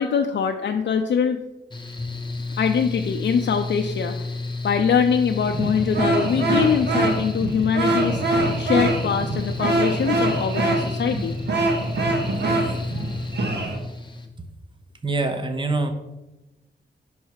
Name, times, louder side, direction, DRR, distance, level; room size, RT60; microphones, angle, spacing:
voice 1, 0.0-1.4 2.6-4.2 4.6-8.2 8.6-11.4, left 6 dB, 70° left, 4 dB, 0.4 m, -23 dB
Mechanical fan, 1.7-14.3, left 3 dB, 25° left, 0.8 m, -31 dB
sound 1, 5.4-13.8, right 2 dB, 65° right, 1.1 m, -24 dB
voice 2, 15.0-15.9, right 3 dB, 25° right, 6 dB, 0.7 m, -25 dB
5.7 x 5.4 x 4.7 m, 1.0 s
wide cardioid pair, 135°, 19 cm